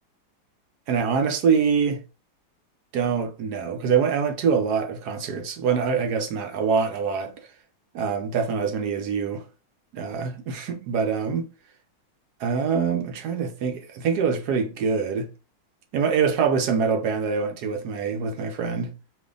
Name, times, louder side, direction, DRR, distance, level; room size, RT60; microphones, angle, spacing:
voice 1, 0.9-2.0 2.9-7.3 7.9-9.4 9.9-11.4 12.4-15.3 15.9-18.9, right 6 dB, 65° right, 1.0 m, -24 dB
4.7 x 2.7 x 3.7 m
omnidirectional pair, 2.3 m